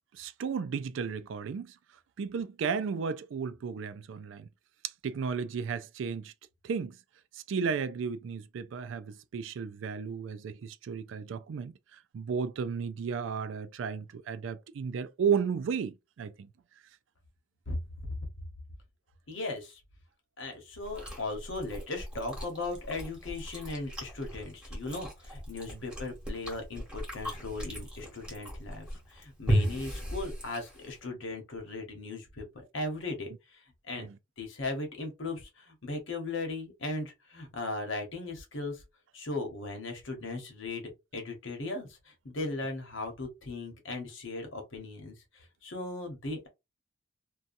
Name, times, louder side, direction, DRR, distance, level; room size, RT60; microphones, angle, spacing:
voice 1, 0.1-1.8 2.2-4.5 5.0-6.3 6.6-7.0 7.3-16.5 25.7-25.8 34.0-34.1, right 6 dB, 75° right, 0.3 m, -34 dB
voice 2, 17.7-18.2 19.3-19.8 20.4-32.4 32.7-34.1 34.4-38.8 39.1-46.5, left 2 dB, 75° left, 1.1 m, -38 dB
Chewing mastication, 20.8-31.0, equal, 5° right, 1.3 m, -36 dB
2.7 x 2.2 x 2.5 m
head